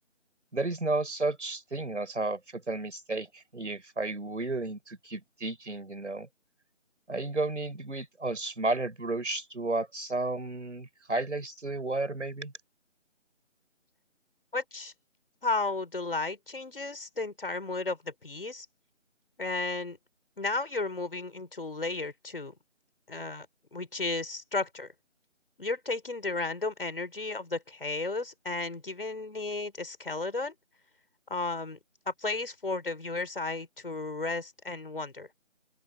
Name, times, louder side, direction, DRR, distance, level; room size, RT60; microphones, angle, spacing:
voice 1, 0.5-6.3 7.1-12.5, right 2 dB, 65° right, 6.6 m, -32 dB
voice 2, 14.5-14.9 15.4-18.7 19.4-20.0 20.4-22.5 23.1-23.5 23.7-24.9 25.6-30.5 31.3-31.8 32.0-35.3, left 3 dB, 45° left, 6.6 m, -33 dB
open air
figure-of-eight pair, 175°, 38 cm